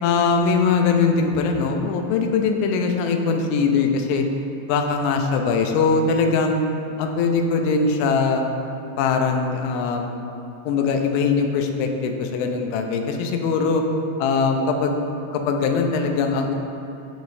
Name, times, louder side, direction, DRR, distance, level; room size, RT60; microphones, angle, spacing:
voice 1, 0.0-4.3 4.7-6.6 7.0-8.4 9.0-10.1 10.7-13.8 14.2-15.0 15.3-16.6, left 5 dB, 90° left, 4 dB, 3.1 m, -21 dB
15.0 x 5.1 x 2.7 m, 2.7 s
omnidirectional pair, 5.3 m